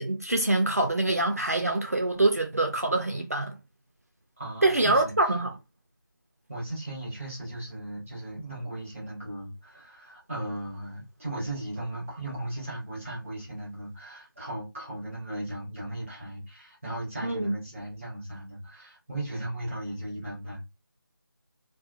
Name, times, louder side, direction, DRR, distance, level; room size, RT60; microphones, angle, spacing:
voice 1, 0.0-3.6 4.6-5.5 17.2-17.5, right 2 dB, 45° right, 0.4 m, -25 dB
voice 2, 4.4-5.3 6.5-20.6, right 1 dB, 5° right, 0.7 m, -37 dB
2.8 x 2.2 x 2.3 m
figure-of-eight pair, 175°, 11 cm